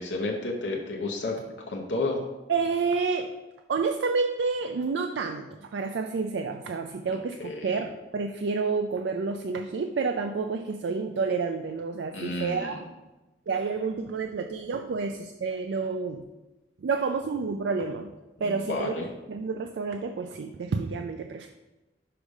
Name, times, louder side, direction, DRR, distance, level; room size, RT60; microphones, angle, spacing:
voice 1, 0.0-1.4 1.7-2.2 7.1-7.8 12.1-12.8 18.4-19.1, left 2 dB, 80° left, 0 dB, 0.8 m, -31 dB
voice 2, 2.5-3.3 3.7-12.8 13.5-16.2 16.8-18.1 18.4-21.5, right 4 dB, 70° right, 5 dB, 0.4 m, -29 dB
4.9 x 4.9 x 5.2 m, 1.1 s
head